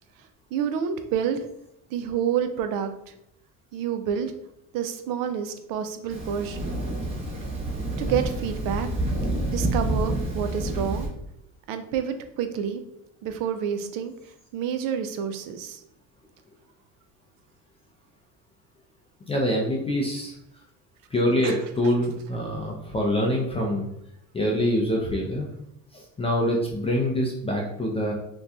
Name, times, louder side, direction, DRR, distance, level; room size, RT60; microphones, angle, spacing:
voice 1, 0.5-1.4 1.9-2.9 3.7-4.3 4.7-6.7 8.0-8.9 9.5-11.1 11.7-12.8 13.2-14.1 14.5-15.8 21.4-21.6, right 8 dB, 65° right, 8 dB, 0.5 m, -28 dB
Thunder, 6.1-11.1, right 1 dB, 15° right, 0.9 m, -28 dB
voice 2, 19.3-20.3 21.1-23.8 24.3-25.5 25.9-28.1, equal, 15° left, -2 dB, 0.4 m, -25 dB
2.7 x 2.2 x 3.5 m, 0.78 s
cardioid pair, 115°, 36 cm